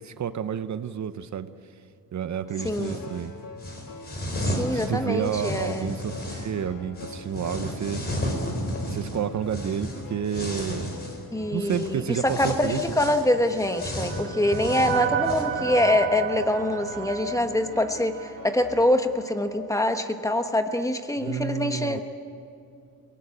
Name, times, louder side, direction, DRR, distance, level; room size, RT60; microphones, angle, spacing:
voice 1, 0.0-1.5 2.1-3.3 4.7-8.1 8.9-10.9 11.5-13.2 21.2-22.0, right 8 dB, 50° right, 12 dB, 0.7 m, -30 dB
sound 1, 2.4-18.9, left 4 dB, 65° left, 2.2 m, -44 dB
sound 2, 2.6-3.1 3.6-6.5 7.0-11.3 11.6-11.9 12.2-15.4, equal, 25° left, 3.9 m, -33 dB
voice 2, 4.4-6.0 11.3-22.0, left 1 dB, 10° left, 7 dB, 1.1 m, -25 dB
sound 3, 13.2-18.6, right 9 dB, 35° right, 1.5 m, -32 dB
29.0 x 18.5 x 8.6 m, 2.5 s
wide cardioid pair, 155°, 36 cm